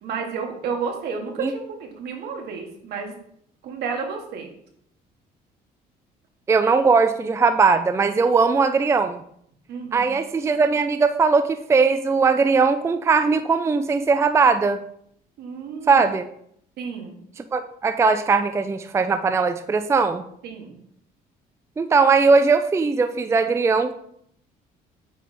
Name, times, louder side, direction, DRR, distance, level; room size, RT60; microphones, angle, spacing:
voice 1, 0.0-3.1 3.6-4.5 9.7-10.2 15.4-16.1 16.8-17.2 20.4-20.8, right 5 dB, 70° right, 3 dB, 1.5 m, -31 dB
voice 2, 6.5-9.2 9.9-14.8 15.9-16.3 17.5-20.2 21.8-23.9, right 4 dB, 15° right, 9 dB, 0.4 m, -19 dB
8.4 x 3.4 x 4.2 m, 0.69 s
cardioid pair, 110°, 17 cm